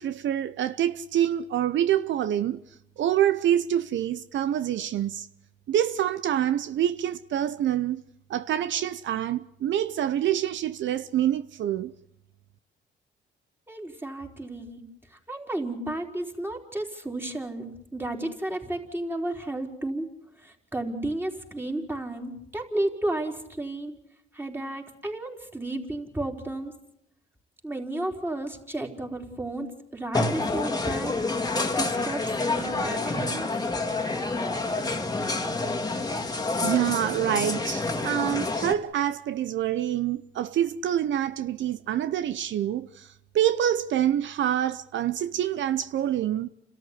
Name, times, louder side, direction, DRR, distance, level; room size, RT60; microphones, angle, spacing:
voice 1, 0.0-2.6 3.0-5.3 5.7-8.0 8.3-11.9 36.6-43.1 43.3-46.5, right 11 dB, 70° right, 0.8 m, -26 dB
voice 2, 13.7-14.8 15.3-17.7 17.9-20.1 20.4-23.9 24.3-26.7 27.6-31.1 31.5-33.5, right 1 dB, 10° right, 4.3 m, -32 dB
sound 1, 30.1-38.7, left 3 dB, 20° left, 2.3 m, -28 dB
29.5 x 13.5 x 9.8 m
cardioid pair, 90°, 20 cm